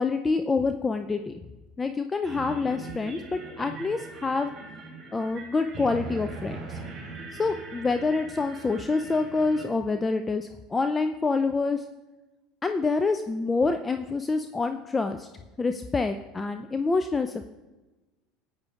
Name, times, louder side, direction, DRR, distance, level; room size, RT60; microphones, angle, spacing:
voice 1, 0.0-1.3 1.8-4.5 5.1-6.8 7.3-11.8 12.6-15.3 15.6-17.5, left 4 dB, 20° left, 8 dB, 0.4 m, -27 dB
sound 1, 2.2-9.6, right 3 dB, 25° right, 3.4 m, -41 dB
14.5 x 8.8 x 2.4 m, 1.1 s
figure-of-eight pair, 70°, 0 cm